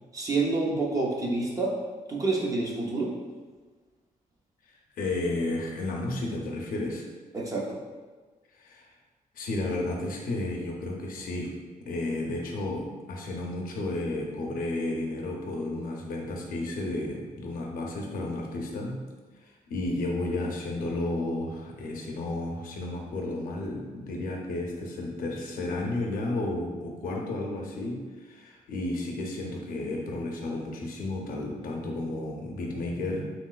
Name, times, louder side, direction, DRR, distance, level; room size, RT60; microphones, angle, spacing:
voice 1, 0.1-1.8 2.1-3.1 7.3-7.8, right 3 dB, 25° right, -2 dB, 0.4 m, -28 dB
voice 2, 5.0-7.0 8.6-8.9 9.3-11.5 11.9-19.0 19.7-33.3, left 2 dB, 75° left, 0 dB, 0.5 m, -32 dB
2.9 x 2.9 x 2.3 m, 1.4 s
wide cardioid pair, 155°, 15 cm